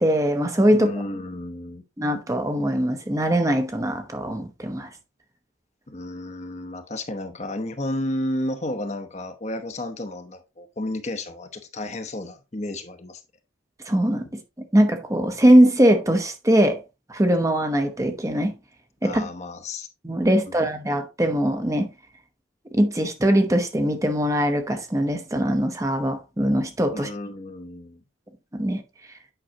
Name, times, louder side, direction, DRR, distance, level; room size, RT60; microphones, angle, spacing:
voice 1, 0.0-0.9 2.0-4.9 13.8-14.4 14.7-16.8 17.1-18.5 19.0-19.3 20.0-21.9 22.7-27.1 28.5-28.8, equal, 15° right, 0.8 m, -21 dB
voice 2, 0.7-1.8 5.9-13.2 19.0-19.9 20.5-20.6 26.9-28.0, left 1 dB, 35° left, 0.9 m, -32 dB
8.9 x 5.6 x 2.8 m
head